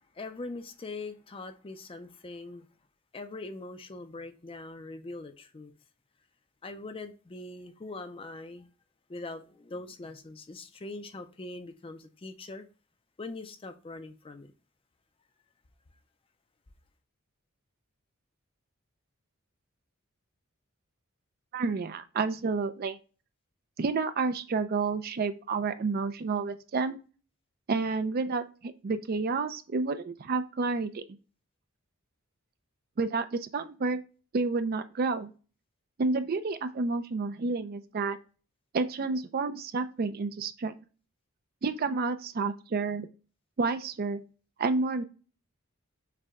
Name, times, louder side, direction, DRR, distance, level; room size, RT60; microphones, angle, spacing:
voice 1, 0.1-2.7 3.1-5.7 6.6-8.7 9.1-12.7 13.2-14.5, left 2 dB, 25° left, 0.4 m, -42 dB
voice 2, 21.5-23.0 23.8-27.0 27.7-31.0 33.0-34.0 34.3-35.3 36.0-38.2 38.7-40.7 41.6-43.1 43.6-44.2 44.6-45.0, right 4 dB, 45° right, 0.4 m, -30 dB
6.6 x 2.2 x 3.5 m
head